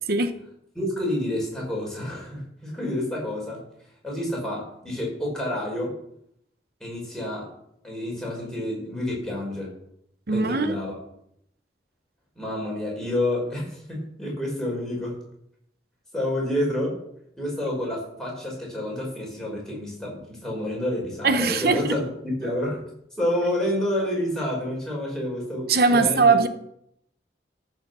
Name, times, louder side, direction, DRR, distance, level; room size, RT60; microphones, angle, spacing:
voice 1, 0.8-3.6 4.0-6.0 6.8-7.5 7.8-9.7 10.3-11.0 12.4-15.2 16.1-17.0 17.4-22.8 23.2-26.4, left 1 dB, 5° left, 5.2 m, -29 dB
voice 2, 10.3-10.8 21.2-21.9 25.7-26.5, right 4 dB, 55° right, 0.9 m, -20 dB
14.0 x 6.5 x 6.8 m
head